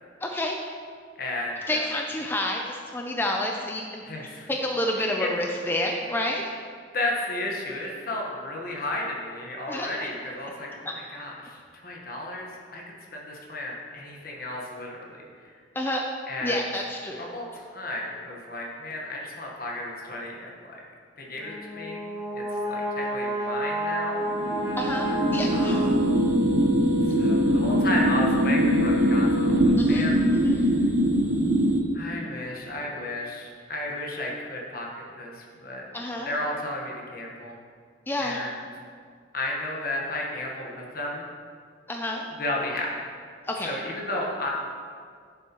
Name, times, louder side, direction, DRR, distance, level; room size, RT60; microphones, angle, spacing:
voice 1, 0.2-0.8 1.7-4.0 4.5-6.5 9.7-9.9 15.8-16.0 16.4-17.3 24.8-25.1 25.3-25.9 29.8-30.6 35.9-36.3 38.1-38.4 41.9-42.3 43.5-43.7, left 1 dB, 10° left, 1 dB, 0.4 m, -29 dB
voice 2, 1.2-1.9 4.1-4.5 5.0-5.3 6.9-15.5 16.3-16.6 17.2-20.8 21.2-22.1 22.3-24.3 24.5-24.7 25.5-26.1 27.0-30.7 31.9-34.9 35.2-35.8 36.2-37.5 38.2-38.5 39.3-41.3 42.4-43.1 43.6-44.5, left 1 dB, 50° left, -1 dB, 1.2 m, -33 dB
Brass instrument, 21.4-26.4, right 1 dB, 15° right, 1.9 m, -31 dB
sound 1, 24.2-31.8, equal, 70° right, 0.7 m, -22 dB
9.8 x 7.1 x 3.0 m, 2.1 s
head